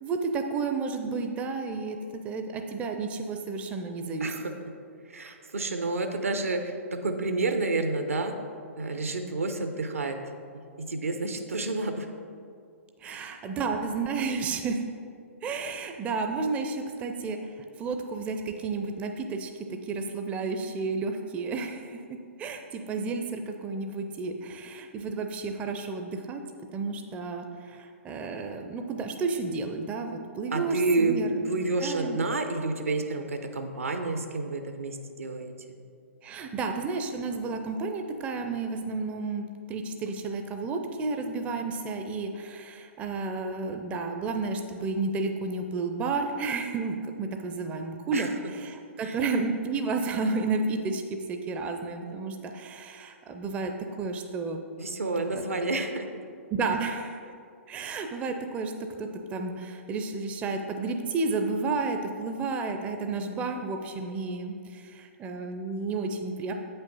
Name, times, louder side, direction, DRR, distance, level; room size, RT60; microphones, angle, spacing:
voice 1, 0.0-2.0 2.2-4.3 13.0-14.9 15.4-26.4 26.7-31.3 31.8-32.2 36.2-53.7 54.0-54.6 55.3-55.4 56.5-57.3 57.7-66.5, right 4 dB, 15° right, 5 dB, 0.4 m, -32 dB
voice 2, 4.2-4.5 5.1-8.3 8.8-10.2 10.8-12.1 13.0-13.3 30.5-31.1 31.4-35.5 48.1-48.3 49.0-49.2 54.8-56.1, right 3 dB, 75° right, 6 dB, 0.7 m, -29 dB
8.1 x 5.6 x 4.0 m, 2.3 s
figure-of-eight pair, 115°, 8 cm